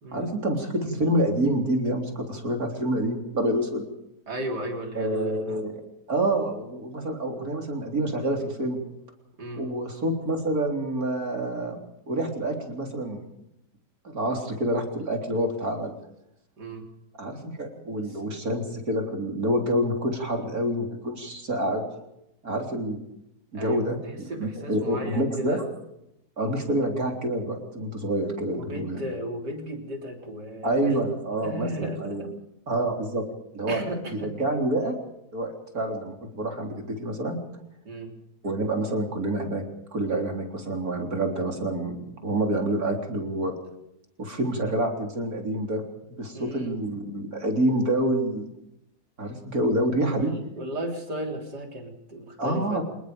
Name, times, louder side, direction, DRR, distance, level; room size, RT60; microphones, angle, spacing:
voice 1, 0.1-3.8 5.0-5.7 6.1-8.8 9.6-11.8 12.1-13.2 14.0-15.9 17.2-21.8 22.4-23.0 23.5-25.7 26.4-29.1 30.6-32.3 32.7-33.2 33.5-33.8 34.1-34.9 35.3-37.4 38.4-39.6 39.9-43.5 44.2-45.8 46.1-48.5 49.2-50.3 52.4-52.8, right 1 dB, 60° right, 3 dB, 4.2 m, -27 dB
voice 2, 4.3-5.6 9.4-9.6 16.6-16.9 18.0-18.1 23.5-25.6 28.5-31.1 31.4-32.3 33.7-34.3 37.8-38.1 46.3-46.8 50.1-52.8, right 1 dB, 80° right, 3 dB, 4.2 m, -35 dB
26.5 x 20.5 x 5.3 m, 0.83 s
omnidirectional pair, 1.7 m